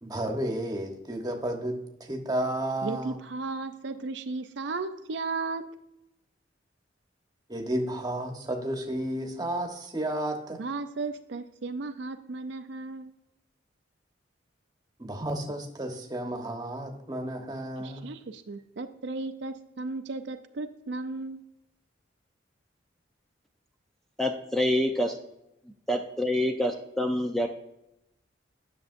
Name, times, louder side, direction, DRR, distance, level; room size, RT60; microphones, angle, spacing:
voice 1, 0.0-1.8 2.1-3.2 7.5-10.6 15.0-18.1, right 1 dB, 20° right, 3 dB, 1.1 m, -32 dB
voice 2, 2.8-5.6 10.5-13.1 17.8-21.4, right 3 dB, 65° right, 8 dB, 0.5 m, -35 dB
voice 3, 24.2-25.1 25.9-27.5, left 1 dB, ahead, 3 dB, 0.5 m, -26 dB
10.5 x 6.8 x 2.6 m, 0.85 s
head